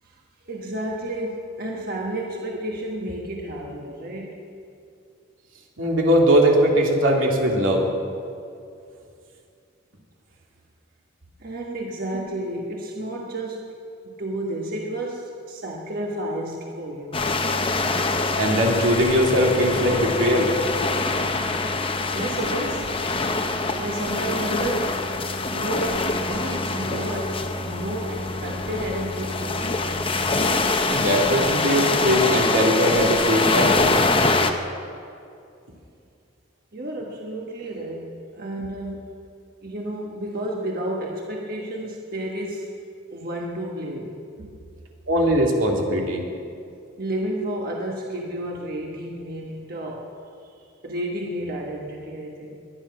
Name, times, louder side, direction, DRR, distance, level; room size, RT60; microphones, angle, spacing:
voice 1, 0.5-4.4 11.4-13.8 14.0-17.6 22.1-22.9 23.8-25.0 25.5-29.9 36.7-39.1 39.6-42.7 43.1-44.5 47.0-50.1 50.8-52.6, right 1 dB, 50° right, -1 dB, 1.4 m, -31 dB
voice 2, 5.8-7.9 18.4-20.5 30.9-33.8 45.1-46.2, equal, 80° right, 0 dB, 2.6 m, -20 dB
sound 1, 17.1-34.5, left 3 dB, 25° left, 0.8 m, -24 dB
22.0 x 10.5 x 5.9 m, 2.5 s
head